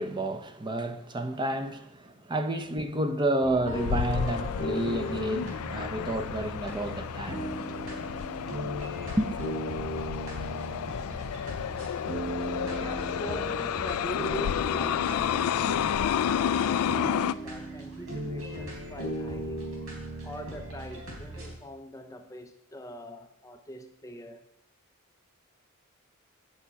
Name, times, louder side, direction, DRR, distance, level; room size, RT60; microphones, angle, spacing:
voice 1, 0.0-7.5 9.1-9.4, right 1 dB, 20° right, 0.7 m, -30 dB
sound 1, 3.4-21.5, right 1 dB, 85° right, 3.5 m, -37 dB
sound 2, 3.7-17.3, left 9 dB, 90° left, 0.3 m, -31 dB
voice 2, 12.8-19.7 20.2-24.5, equal, 15° left, 0.5 m, -42 dB
8.6 x 6.3 x 8.3 m
head